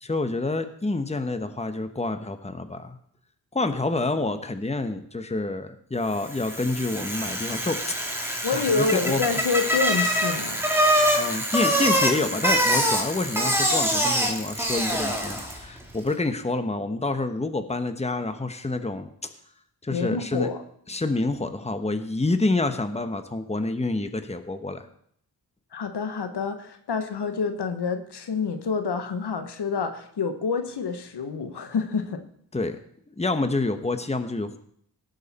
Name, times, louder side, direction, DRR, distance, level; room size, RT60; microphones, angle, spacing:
voice 1, 0.0-3.0 3.5-7.9 8.2-9.3 11.2-19.1 19.8-20.5 20.9-24.9 32.5-32.8 33.1-34.6, left 2 dB, 15° left, 9 dB, 1.1 m, -28 dB
Bicycle, 6.2-15.7, equal, 5° right, 2.5 m, -24 dB
voice 2, 8.4-10.6 19.9-20.6 25.7-32.2, left 5 dB, 75° left, 8 dB, 1.2 m, -27 dB
18.0 x 6.6 x 4.2 m, 0.66 s
cardioid pair, 60°, 40 cm